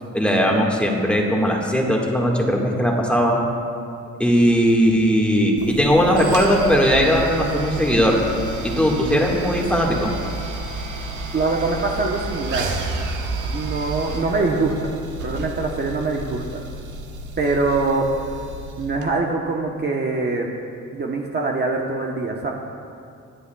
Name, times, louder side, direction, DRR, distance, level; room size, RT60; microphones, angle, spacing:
voice 1, 0.1-3.4 4.2-8.2 8.6-10.1, equal, 5° left, -1 dB, 1.7 m, -18 dB
sound 1, 5.6-19.1, right 2 dB, 85° right, 1.3 m, -31 dB
voice 2, 11.3-12.7 13.4-16.6 17.4-18.1 18.3-18.4 18.8-20.5 20.9-22.5, right 3 dB, 35° right, 0 dB, 1.0 m, -24 dB
25.0 x 8.3 x 2.3 m, 2.4 s
cardioid pair, 90°, 30 cm